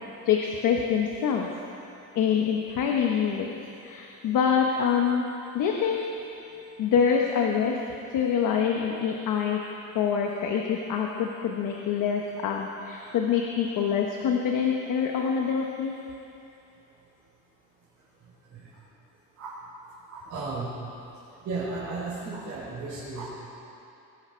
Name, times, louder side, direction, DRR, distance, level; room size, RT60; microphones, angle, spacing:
voice 1, 0.2-1.5 2.1-3.5 3.8-5.3 5.5-6.1 6.8-7.8 8.1-9.6 9.9-15.9, left 7 dB, 65° left, 1 dB, 1.3 m, -25 dB
voice 2, 20.3-20.7 21.4-23.3, right 3 dB, 55° right, -9 dB, 4.5 m, -33 dB
22.0 x 11.5 x 4.6 m, 2.9 s
cardioid pair, 145°, 33 cm